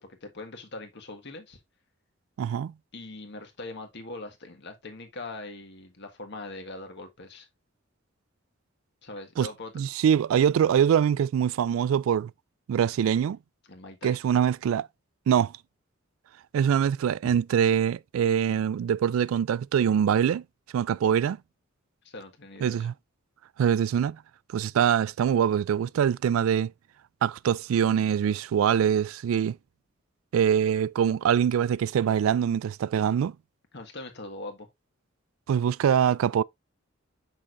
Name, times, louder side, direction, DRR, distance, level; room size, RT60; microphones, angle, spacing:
voice 1, 0.0-1.6 2.9-7.5 9.0-9.7 13.7-14.2 17.2-17.4 22.0-22.9 33.7-34.7, left 2 dB, 60° left, 1.6 m, -41 dB
voice 2, 2.4-2.7 9.4-9.5 9.8-12.3 12.7-13.4 14.0-14.9 15.3-15.5 16.5-20.4 20.7-21.4 22.6-22.9 23.6-24.2 24.5-26.7 27.2-29.6 30.3-33.3 35.5-36.4, right 8 dB, 90° right, 0.3 m, -24 dB
6.4 x 6.1 x 2.5 m
head